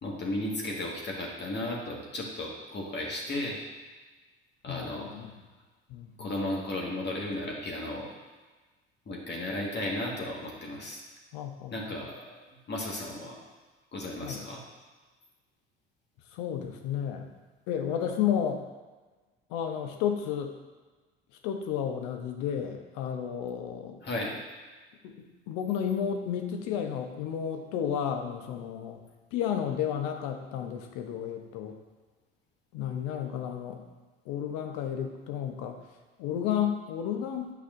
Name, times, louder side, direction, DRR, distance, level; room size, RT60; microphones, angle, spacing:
voice 1, 0.0-3.6 4.6-5.1 6.2-8.1 9.1-11.0 11.7-12.4 12.7-13.4 13.9-14.6 24.0-24.4, left 1 dB, 35° left, -2 dB, 1.7 m, -34 dB
voice 2, 4.7-5.3 5.9-6.3 11.3-11.7 14.2-14.5 16.3-17.3 17.7-18.6 19.5-20.5 21.4-24.0 25.0-29.0 29.3-31.8 32.7-33.8 34.3-35.8 36.2-37.5, left 9 dB, 65° left, 5 dB, 0.9 m, -32 dB
8.5 x 5.7 x 2.6 m, 1.3 s
hypercardioid pair, 65°, 31 cm